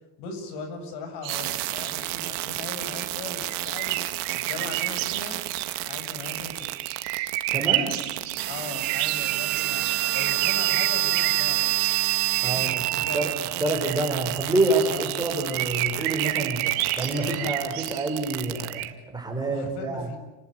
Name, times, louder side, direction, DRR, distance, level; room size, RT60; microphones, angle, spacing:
voice 1, 0.2-4.0 4.3-5.4 5.8-6.8 7.7-11.9 12.5-13.2 14.9-15.2 17.0-17.7 19.3-20.2, left 4 dB, 70° left, 6 dB, 8.0 m, -39 dB
sound 1, 1.2-18.9, right 16 dB, 85° right, 3.8 m, -32 dB
sound 2, 1.3-18.9, right 18 dB, 65° right, 2.1 m, -29 dB
voice 2, 7.5-7.9 12.4-13.3 13.6-20.1, right 2 dB, 10° right, 3 dB, 5.4 m, -27 dB
29.5 x 19.5 x 9.5 m, 1.1 s
cardioid pair, 160°, 43 cm